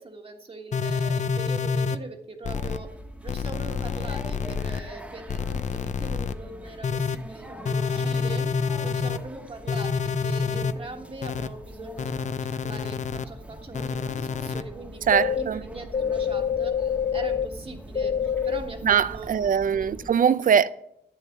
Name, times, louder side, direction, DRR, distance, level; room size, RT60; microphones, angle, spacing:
voice 1, 0.0-3.0 3.2-19.3 19.7-19.9, right 2 dB, 35° right, 1.5 m, -41 dB
sound 1, 0.7-2.0 2.4-2.8 3.3-4.8 5.3-6.3 6.8-7.2 7.7-9.2 9.7-10.7 11.2-11.5 12.0-13.3 13.7-14.6 15.1-15.4 15.9-17.5 18.0-18.6, left 6 dB, 45° left, 0.7 m, -27 dB
sound 2, 2.5-20.1, right 1 dB, 5° right, 1.3 m, -43 dB
voice 2, 15.1-15.6 18.8-20.7, right 8 dB, 50° right, 0.5 m, -21 dB
11.5 x 9.3 x 7.3 m
wide cardioid pair, 125°, 17 cm